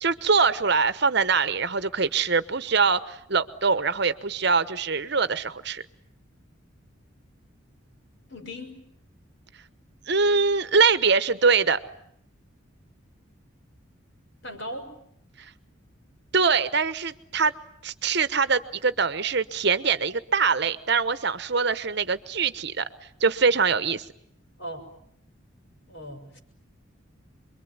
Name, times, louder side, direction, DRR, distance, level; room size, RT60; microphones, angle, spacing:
voice 1, 0.0-5.8 10.1-11.8 16.3-17.5 17.8-22.8 23.2-24.0, right 5 dB, 55° right, 13 dB, 1.1 m, -23 dB
voice 2, 8.3-8.7 14.4-14.9 24.6-24.8 25.9-26.4, equal, 60° left, 5 dB, 5.9 m, -37 dB
27.0 x 23.0 x 9.5 m, 0.70 s
head